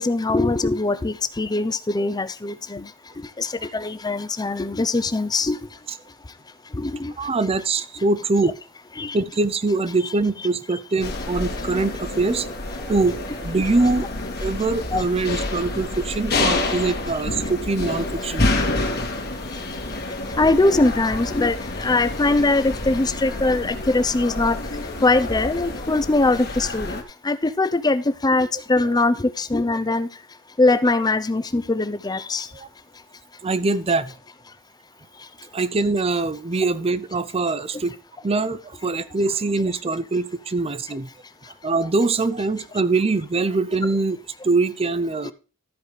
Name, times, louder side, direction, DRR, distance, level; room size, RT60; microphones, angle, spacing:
voice 1, 0.0-2.9 3.4-5.6 6.7-7.2 9.0-9.2 11.8-11.9 14.9-15.0 15.3-15.4 20.4-24.6 25.0-30.1 30.6-32.5 45.2-45.3, left 2 dB, 20° left, 0.6 m, -22 dB
voice 2, 7.2-8.5 9.1-14.1 14.4-18.5 18.9-19.0 32.5-32.7 33.4-34.1 35.5-38.0 38.2-41.1 41.6-44.2 44.4-45.3, right 3 dB, 30° right, 0.5 m, -23 dB
sound 1, 11.0-27.0, left 2 dB, 50° left, 1.7 m, -28 dB
13.0 x 4.9 x 4.9 m
head